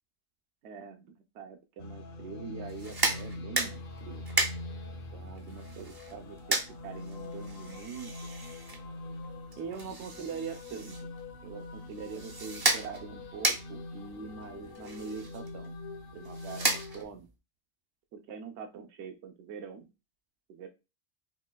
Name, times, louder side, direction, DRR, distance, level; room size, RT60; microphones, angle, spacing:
voice 1, 0.6-1.1 1.3-4.2 5.1-8.3 9.6-11.1 11.4-15.7 16.1-17.3 18.1-19.9 20.5-20.7, right 6 dB, 85° right, 6 dB, 0.9 m, -43 dB
sound 1, 1.8-17.0, left 2 dB, 60° left, 0.7 m, -44 dB
sound 2, 2.7-17.3, right 2 dB, 35° right, 0.4 m, -35 dB
4.2 x 3.1 x 2.2 m, 0.28 s
omnidirectional pair, 1.1 m